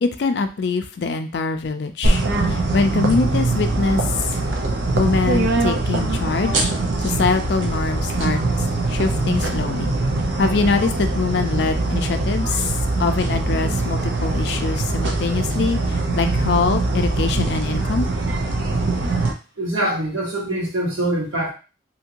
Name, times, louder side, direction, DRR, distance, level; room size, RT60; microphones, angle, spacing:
voice 1, 0.0-2.2 2.5-4.0 4.9-6.7 7.0-8.4 8.9-9.9 10.4-12.7 13.0-18.1, left 4 dB, 60° left, 7 dB, 0.4 m, -23 dB
sound 1, 2.0-19.3, right 2 dB, 65° right, 0.6 m, -22 dB
voice 2, 19.6-21.5, right 1 dB, 90° right, -3 dB, 1.2 m, -24 dB
2.7 x 2.6 x 2.8 m, 0.32 s
head